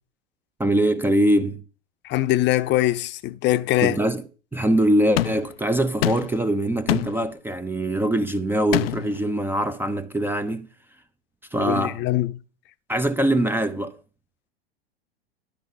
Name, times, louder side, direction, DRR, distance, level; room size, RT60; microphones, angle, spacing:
voice 1, 0.6-1.6 3.8-4.2 4.5-10.7 11.5-12.0 12.9-14.0, right 1 dB, 5° right, 0.6 m, -22 dB
voice 2, 2.0-4.0 11.6-12.3, left 15 dB, 35° left, 0.8 m, -22 dB
sound 1, 5.2-5.5 6.0-6.4 6.9-7.2 8.7-9.2, left 14 dB, 65° left, 0.5 m, -24 dB
12.0 x 5.5 x 5.5 m
hypercardioid pair, 90°, 31 cm